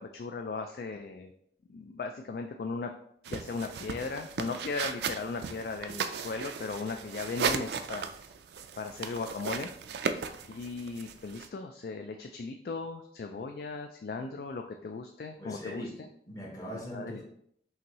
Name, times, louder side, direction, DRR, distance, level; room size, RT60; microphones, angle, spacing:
voice 1, 0.0-1.3 1.7-2.9 3.3-8.1 8.8-9.7 10.5-16.1 16.9-17.2, left 4 dB, 55° left, 4 dB, 0.3 m, -37 dB
sound 1, 3.2-11.5, right 6 dB, 70° right, 0.3 m, -36 dB
voice 2, 15.4-16.0 16.3-17.2, equal, 20° left, -1 dB, 0.8 m, -40 dB
5.6 x 2.6 x 3.0 m, 0.68 s
head